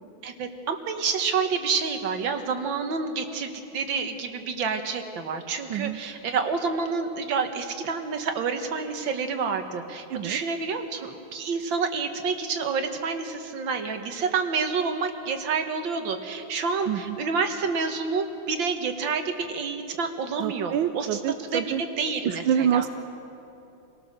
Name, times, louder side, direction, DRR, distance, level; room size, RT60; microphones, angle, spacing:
voice 1, 0.2-21.2 21.5-22.9, right 5 dB, 70° right, 6 dB, 2.0 m, -28 dB
voice 2, 16.9-17.2 20.4-21.8 22.2-22.9, right 9 dB, 90° right, 9 dB, 1.5 m, -26 dB
26.5 x 18.0 x 6.6 m, 2.8 s
omnidirectional pair, 2.2 m